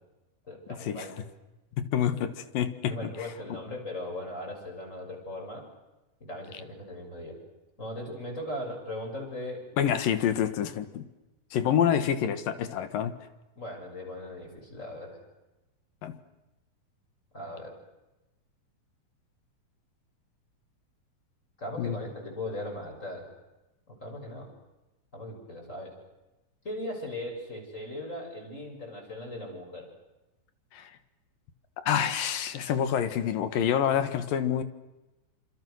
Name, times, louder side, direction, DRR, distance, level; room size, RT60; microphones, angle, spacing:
voice 1, 0.5-1.1 2.9-5.7 6.2-7.3 7.8-9.6 13.6-15.2 17.3-17.7 21.6-23.3 23.9-24.5 25.1-25.9 26.6-29.9, left 1 dB, 20° left, 1 dB, 7.1 m, -38 dB
voice 2, 1.8-3.0 3.5-3.6 9.8-11.1 11.5-13.1 16.0-16.2 21.8-22.0 30.7-30.9 31.8-34.6, left 9 dB, 70° left, 11 dB, 3.2 m, -27 dB
28.5 x 27.0 x 6.5 m, 1.0 s
omnidirectional pair, 4.3 m